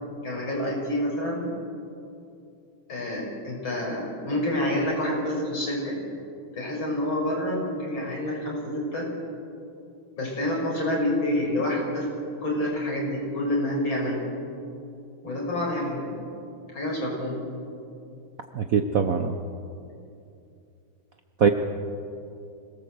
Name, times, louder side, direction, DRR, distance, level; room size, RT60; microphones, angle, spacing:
voice 1, 0.2-1.4 2.9-6.0 6.5-9.1 10.2-12.1 12.4-14.2 15.2-16.2 16.7-17.4, left 1 dB, 60° left, -2 dB, 6.5 m, -28 dB
voice 2, 18.5-19.4 21.4-21.5, right 6 dB, 55° right, 6 dB, 1.0 m, -22 dB
25.5 x 18.0 x 7.9 m, 2.6 s
omnidirectional pair, 2.4 m